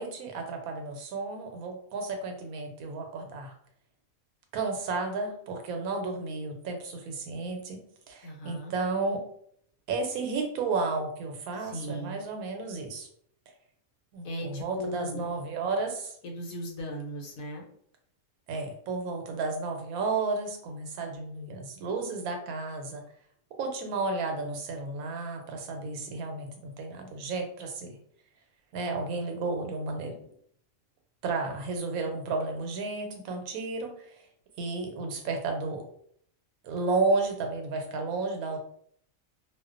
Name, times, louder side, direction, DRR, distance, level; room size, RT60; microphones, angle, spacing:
voice 1, 0.0-3.5 4.5-9.2 9.9-13.1 14.1-16.2 18.5-23.0 23.6-28.0 28.7-30.2 31.2-33.9 34.6-35.8 36.6-38.6, right 3 dB, 90° right, 4 dB, 1.0 m, -32 dB
voice 2, 8.2-8.7 11.5-12.2 14.2-15.3 16.2-17.7 31.3-31.8, right 1 dB, 75° left, 0 dB, 1.0 m, -38 dB
2.3 x 2.1 x 2.4 m, 0.65 s
omnidirectional pair, 1.5 m